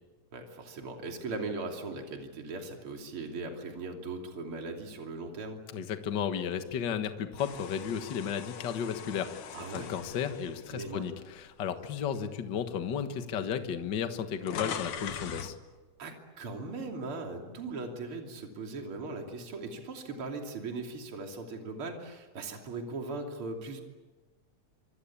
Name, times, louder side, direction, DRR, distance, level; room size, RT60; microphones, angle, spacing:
voice 1, 0.3-5.6 9.5-9.9 10.7-11.1 16.0-23.8, right 3 dB, 45° right, 2 dB, 3.7 m, -39 dB
voice 2, 5.7-9.4 9.7-15.5, left 8 dB, 45° left, 7 dB, 1.7 m, -34 dB
sound 1, 7.4-11.6 12.1-12.3 13.2-13.3 13.5-15.6, left 8 dB, 90° left, 3.0 m, -42 dB
26.0 x 25.0 x 8.7 m, 1.3 s
omnidirectional pair, 3.4 m